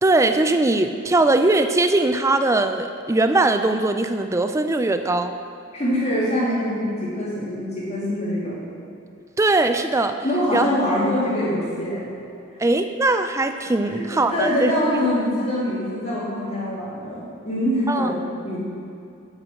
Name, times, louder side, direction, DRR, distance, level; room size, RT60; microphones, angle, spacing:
voice 1, 0.0-5.3 9.4-10.2 10.5-10.7 12.6-14.7 17.9-18.1, right 2 dB, 15° right, 8 dB, 0.4 m, -20 dB
voice 2, 5.7-8.6 10.2-12.1 13.8-18.6, equal, 30° left, -8 dB, 3.0 m, -24 dB
9.5 x 8.2 x 7.7 m, 2.6 s
head